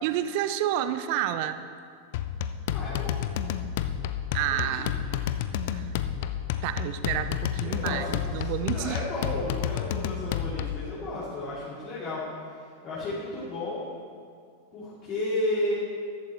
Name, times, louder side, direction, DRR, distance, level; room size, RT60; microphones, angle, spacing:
voice 1, 0.0-1.7 4.3-5.0 5.7-5.9 6.6-9.0, right 12 dB, 45° right, 11 dB, 0.6 m, -29 dB
sound 1, 2.1-10.9, left 9 dB, 50° left, 0.5 m, -30 dB
voice 2, 2.7-3.2 4.4-4.9 7.6-8.0 8.4-12.2 12.8-13.9 14.7-15.7, left 1 dB, 35° left, -10 dB, 3.5 m, -33 dB
14.5 x 11.5 x 3.4 m, 2.2 s
figure-of-eight pair, 90°, 0 cm